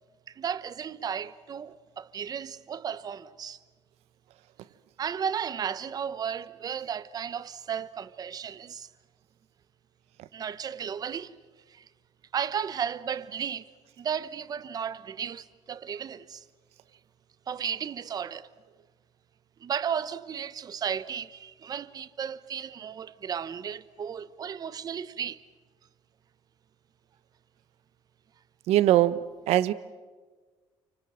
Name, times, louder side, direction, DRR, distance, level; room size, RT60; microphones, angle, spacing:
voice 1, 0.3-3.6 5.0-8.9 10.3-11.4 11.7-11.9 12.3-13.7 14.0-16.4 17.5-18.5 19.6-25.4, right 7 dB, 40° right, 0.9 m, -34 dB
voice 2, 28.7-29.7, right 14 dB, 90° right, 1.1 m, -22 dB
29.0 x 25.0 x 7.6 m
cardioid pair, 150°, 10 cm